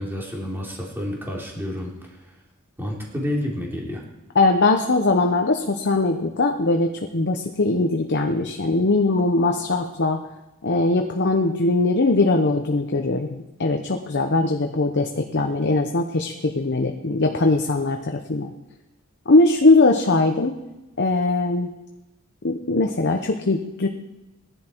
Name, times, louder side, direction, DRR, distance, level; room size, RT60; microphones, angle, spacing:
voice 1, 0.0-1.9 2.8-4.0, left 1 dB, 10° right, -2 dB, 3.2 m, -29 dB
voice 2, 4.3-10.2 10.6-18.5 19.3-20.5 21.0-21.7 22.4-23.9, left 2 dB, 55° left, 4 dB, 0.9 m, -20 dB
18.0 x 11.0 x 4.6 m, 0.99 s
head